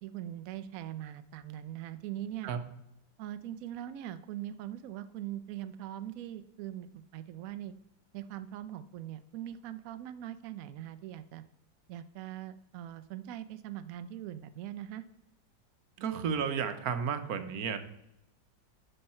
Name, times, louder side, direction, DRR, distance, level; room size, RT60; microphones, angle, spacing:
voice 1, 0.0-2.5 3.2-7.7 8.1-11.4 11.9-15.0, right 12 dB, 80° right, 12 dB, 0.7 m, -41 dB
voice 2, 16.0-17.8, right 7 dB, 60° right, 9 dB, 1.2 m, -32 dB
12.0 x 5.6 x 4.3 m, 0.85 s
omnidirectional pair, 2.0 m